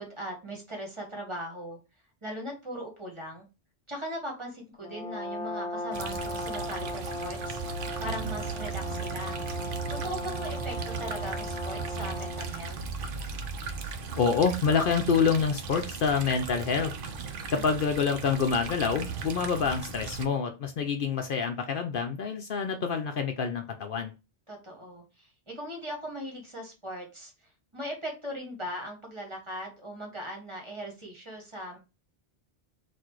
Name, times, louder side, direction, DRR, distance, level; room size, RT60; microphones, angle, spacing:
voice 1, 0.0-1.8 2.2-3.5 3.9-9.4 9.9-12.8 17.5-17.8 24.5-27.3 27.7-31.8, equal, 30° right, 1 dB, 1.4 m, -39 dB
Brass instrument, 4.8-12.6, left 1 dB, 5° left, 1.3 m, -37 dB
sound 1, 5.9-20.3, right 5 dB, 60° right, 0.8 m, -37 dB
voice 2, 13.8-16.9 17.5-24.1, left 5 dB, 60° left, 5 dB, 0.7 m, -27 dB
4.1 x 2.5 x 4.5 m, 0.29 s
omnidirectional pair, 1.1 m